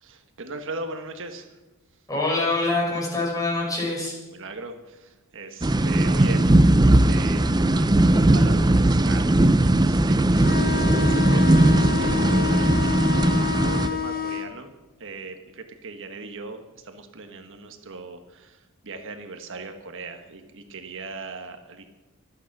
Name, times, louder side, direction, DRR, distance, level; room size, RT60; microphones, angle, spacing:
voice 1, 0.0-1.6 4.3-14.7 15.0-21.8, right 3 dB, 60° right, 6 dB, 1.4 m, -39 dB
voice 2, 2.1-4.1, left 2 dB, 15° left, -4 dB, 6.3 m, -25 dB
sound 1, 5.6-13.9, right 1 dB, 20° right, 0.6 m, -18 dB
sound 2, 10.3-14.5, left 8 dB, 45° left, 1.7 m, -28 dB
25.0 x 9.3 x 6.0 m, 1.1 s
head